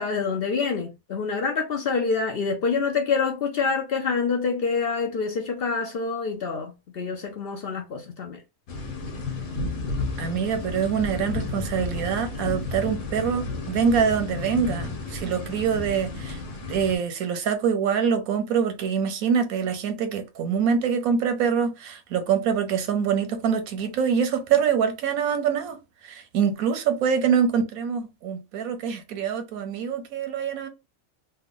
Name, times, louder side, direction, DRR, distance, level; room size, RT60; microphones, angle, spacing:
voice 1, 0.0-8.4, left 5 dB, 60° left, 0.6 m, -26 dB
sound 1, 8.7-17.0, left 3 dB, 80° left, 1.4 m, -32 dB
voice 2, 10.2-16.4 16.7-25.8 26.0-30.7, right 7 dB, 90° right, 1.1 m, -25 dB
3.3 x 2.2 x 3.6 m
omnidirectional pair, 1.5 m